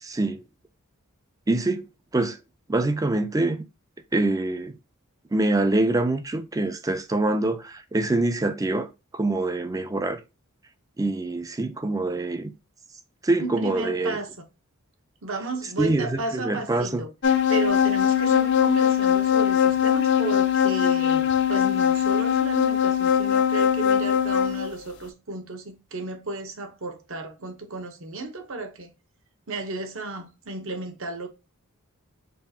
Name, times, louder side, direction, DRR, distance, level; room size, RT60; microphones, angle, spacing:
voice 1, 0.0-0.4 1.5-1.9 2.1-2.4 2.7-3.6 4.1-4.8 5.3-8.9 9.1-10.2 11.0-12.5 13.2-14.2 15.8-17.0, right 2 dB, 15° right, 0.4 m, -25 dB
voice 2, 13.4-14.3 15.2-17.1 17.5-28.9 29.5-31.3, right 3 dB, 65° right, 0.9 m, -33 dB
sound 1, 17.2-24.7, left 9 dB, 55° left, 0.5 m, -21 dB
5.3 x 2.4 x 2.8 m
head